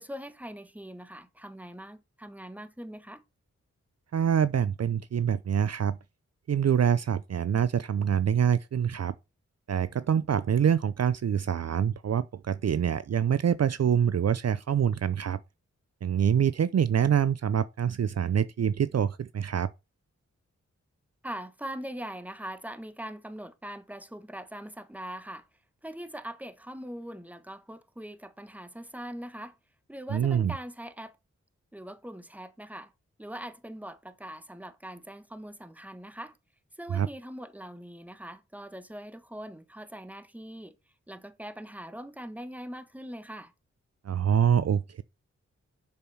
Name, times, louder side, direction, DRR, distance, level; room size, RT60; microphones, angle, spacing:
voice 1, 0.0-3.2 21.2-25.4 25.8-29.6 29.9-31.2 31.7-32.9 33.2-36.4 36.8-40.8 41.1-43.5, equal, 5° right, 1.2 m, -42 dB
voice 2, 4.1-6.0 6.5-9.1 9.7-15.4 16.0-19.7 30.1-30.5 36.9-37.1 44.0-45.0, right 8 dB, 55° right, 0.6 m, -25 dB
7.0 x 6.6 x 5.5 m
cardioid pair, 40°, 30 cm